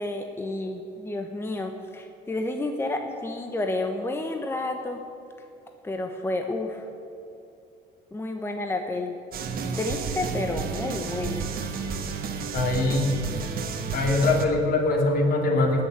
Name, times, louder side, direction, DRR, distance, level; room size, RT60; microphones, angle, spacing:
voice 1, 0.0-5.0 5.8-6.9 8.1-9.2 9.8-11.5, left 2 dB, 15° left, 4 dB, 1.1 m, -30 dB
sound 1, 9.3-14.5, right 5 dB, 60° right, 1.4 m, -31 dB
voice 2, 12.5-13.2 13.9-15.8, left 2 dB, 60° left, 2 dB, 2.8 m, -22 dB
18.5 x 6.8 x 8.9 m, 2.7 s
cardioid pair, 110°, 17 cm